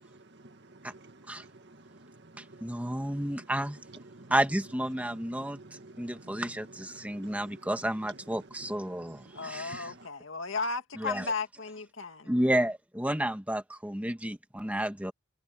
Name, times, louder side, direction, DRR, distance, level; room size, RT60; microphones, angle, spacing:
voice 1, 0.8-1.8 2.5-2.9 4.1-4.3 5.4-6.4 7.1-7.4, right 2 dB, 50° right, 2.0 m, -51 dB
voice 2, 2.6-3.8 4.3-5.6 6.0-9.9 11.0-11.3 12.2-15.1, right 1 dB, 5° right, 1.6 m, -31 dB
voice 3, 9.4-12.3, left 4 dB, 60° left, 2.3 m, -35 dB
head